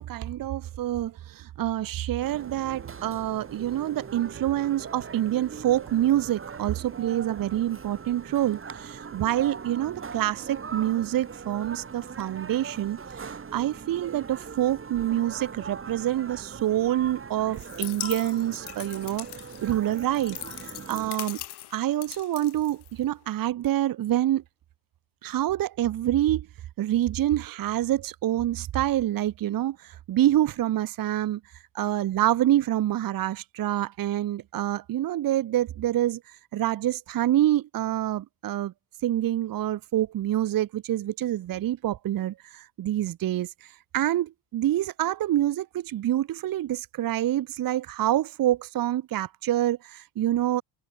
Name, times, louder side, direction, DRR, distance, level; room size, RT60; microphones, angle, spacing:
voice 1, 0.0-19.3 19.6-21.4 21.7-24.4 25.2-26.5 26.8-31.4 31.7-36.2 36.5-38.7 39.0-50.6, right 13 dB, 45° right, 1.0 m, -27 dB
sound 1, 2.2-21.1, right 5 dB, 30° right, 3.9 m, -41 dB
sound 2, 17.5-23.3, left 15 dB, 60° left, 1.1 m, -40 dB
cardioid pair, 120°, 45 cm